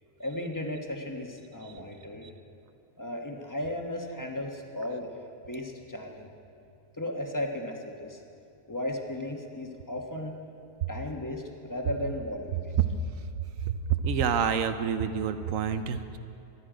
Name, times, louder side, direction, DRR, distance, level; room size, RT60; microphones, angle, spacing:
voice 1, 0.2-2.3 3.0-6.3 7.0-8.2 8.7-10.3 10.9-12.8, left 1 dB, 15° left, 2 dB, 1.1 m, -35 dB
voice 2, 14.0-16.2, right 6 dB, 70° right, 10 dB, 1.1 m, -28 dB
24.0 x 9.8 x 5.0 m, 2.6 s
omnidirectional pair, 1.5 m